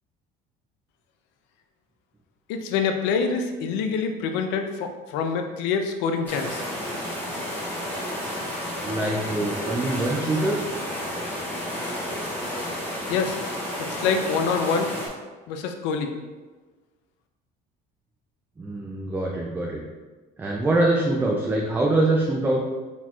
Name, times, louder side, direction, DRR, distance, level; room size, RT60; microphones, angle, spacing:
voice 1, 2.5-6.6 13.1-13.4 13.9-14.9 15.5-16.1, left 5 dB, 85° left, 6 dB, 0.5 m, -26 dB
sound 1, 6.3-15.1, left 1 dB, 10° left, 1.2 m, -31 dB
voice 2, 8.8-10.6 18.6-19.8 20.4-22.6, right 2 dB, 10° right, -2 dB, 0.3 m, -24 dB
4.4 x 4.2 x 2.4 m, 1.3 s
cardioid pair, 155°, 18 cm